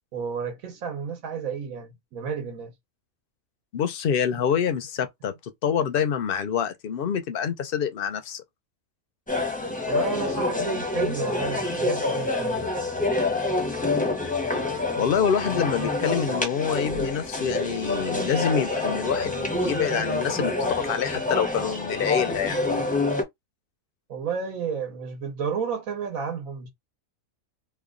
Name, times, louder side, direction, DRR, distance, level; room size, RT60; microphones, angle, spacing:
voice 1, 0.1-2.7 9.8-12.7 24.1-26.7, right 6 dB, 80° right, 1.3 m, -31 dB
voice 2, 3.7-5.3 5.6-8.4 15.0-22.6, left 7 dB, 55° left, 0.6 m, -26 dB
sound 1, 9.3-23.2, left 2 dB, 10° left, 0.6 m, -27 dB
3.0 x 2.3 x 3.7 m
omnidirectional pair, 1.4 m